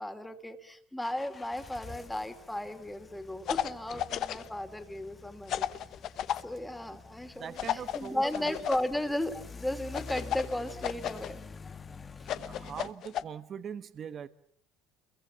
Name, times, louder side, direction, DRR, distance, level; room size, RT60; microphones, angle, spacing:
voice 1, 0.0-5.7 6.3-11.4 12.2-12.3, left 1 dB, 5° left, 2.8 m, -35 dB
sound 1, 1.0-12.9, left 4 dB, 25° left, 1.4 m, -48 dB
sound 2, 3.5-4.5 5.5-6.4 7.6-8.9 9.9-11.3 12.2-13.2, left 11 dB, 55° left, 1.0 m, -33 dB
voice 2, 7.3-8.5 12.3-14.3, right 8 dB, 40° right, 1.2 m, -42 dB
28.5 x 23.0 x 7.0 m
cardioid pair, 115°, 0 cm